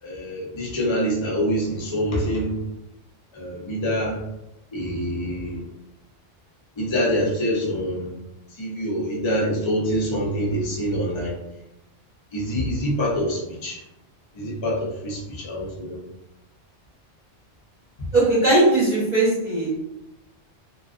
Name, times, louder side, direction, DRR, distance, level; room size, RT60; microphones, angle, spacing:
voice 1, 0.0-2.6 3.3-4.2 4.7-5.6 6.8-8.1 8.6-11.3 12.3-13.8 14.3-16.0, equal, 35° left, -4 dB, 0.4 m, -25 dB
voice 2, 18.1-19.8, right 2 dB, 40° right, -9 dB, 0.8 m, -19 dB
2.5 x 2.3 x 2.3 m, 0.90 s
omnidirectional pair, 1.3 m